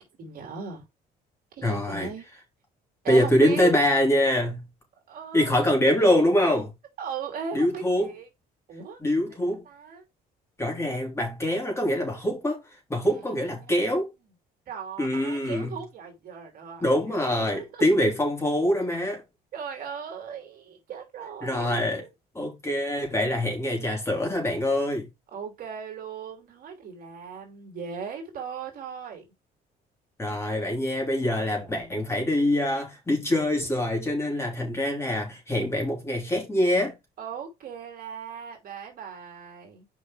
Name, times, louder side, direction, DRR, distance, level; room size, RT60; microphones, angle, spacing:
voice 1, 0.2-0.8 1.5-2.3 3.0-3.7 5.1-5.7 7.0-8.3 8.7-9.0 9.3-9.4 9.6-10.0 13.0-13.8 14.7-17.8 19.5-22.1 25.3-29.3 31.3-32.1 37.2-39.9, right 6 dB, 60° right, 2.9 m, -38 dB
voice 2, 1.6-2.1 3.1-4.7 5.3-6.7 7.5-8.1 9.0-9.7 10.6-12.6 12.9-14.1 15.0-15.8 16.8-19.2 21.4-22.0 22.3-25.1 30.2-37.0, left 1 dB, 15° left, 3.6 m, -24 dB
5.4 x 5.1 x 4.7 m
cardioid pair, 110°, 17 cm